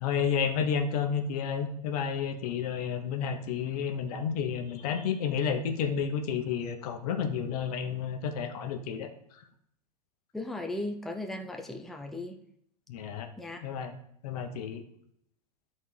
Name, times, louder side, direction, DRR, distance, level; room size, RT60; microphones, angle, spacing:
voice 1, 0.0-9.1 12.9-13.3 13.6-14.0 14.2-14.8, left 7 dB, 65° left, 6 dB, 1.0 m, -31 dB
voice 2, 10.3-12.4 13.4-13.6, left 1 dB, ahead, 3 dB, 0.6 m, -36 dB
12.5 x 4.3 x 3.3 m, 0.72 s
hypercardioid pair, 115°, 21 cm